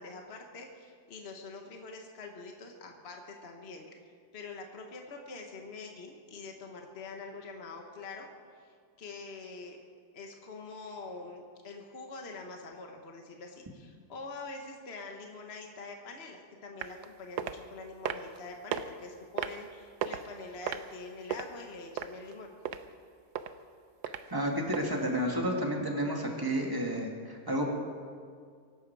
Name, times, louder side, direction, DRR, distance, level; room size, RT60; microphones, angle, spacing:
voice 1, 0.0-4.0 4.3-8.3 8.6-9.8 10.1-22.5, left 3 dB, 40° left, 2 dB, 1.5 m, -45 dB
sound 1, 16.8-17.1 17.4-17.6 18.1-18.4 18.7-18.8 19.4-19.6 20.0-20.3 20.7-21.4 22.0-22.3 22.7-22.8 23.4-23.5 24.0-24.2 24.7-24.9 25.3-25.4, right 9 dB, 80° right, 1.3 m, -33 dB
voice 2, 24.3-27.7, equal, 15° right, -1 dB, 2.3 m, -31 dB
24.0 x 11.5 x 4.8 m, 2.1 s
omnidirectional pair, 1.7 m